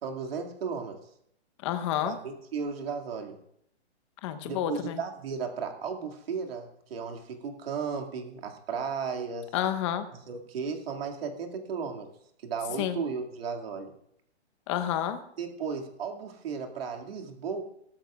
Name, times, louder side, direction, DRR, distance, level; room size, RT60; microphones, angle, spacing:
voice 1, 0.0-1.0 2.0-3.4 4.4-9.5 10.1-12.1 12.4-13.9 15.4-17.6, right 5 dB, 60° right, 2 dB, 2.3 m, -35 dB
voice 2, 1.6-2.2 4.2-5.0 9.5-10.1 12.8-13.0 14.7-15.2, left 11 dB, 25° left, 8 dB, 0.9 m, -29 dB
18.5 x 13.0 x 2.4 m, 0.73 s
hypercardioid pair, 150°, 34 cm